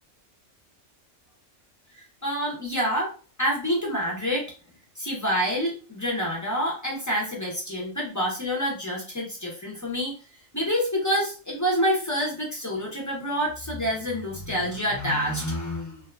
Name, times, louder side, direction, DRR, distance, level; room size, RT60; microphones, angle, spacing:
voice 1, 2.2-3.1 3.4-4.5 5.0-10.1 10.5-16.0, equal, 30° left, -3 dB, 0.3 m, -27 dB
2.7 x 2.3 x 2.2 m, 0.36 s
omnidirectional pair, 1.3 m